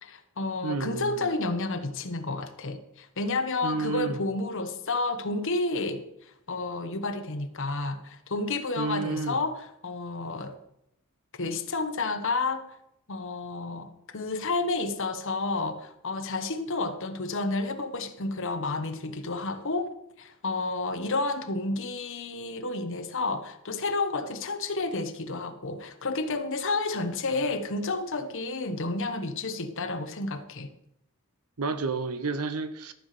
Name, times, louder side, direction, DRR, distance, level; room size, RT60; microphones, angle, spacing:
voice 1, 0.0-10.6 11.4-12.6 13.1-19.9 20.2-30.7, left 3 dB, 60° left, 1.1 m, -31 dB
voice 2, 0.6-1.3 3.6-4.2 8.8-9.4 31.6-32.9, right 4 dB, 80° right, 0.9 m, -30 dB
13.0 x 5.8 x 6.6 m
head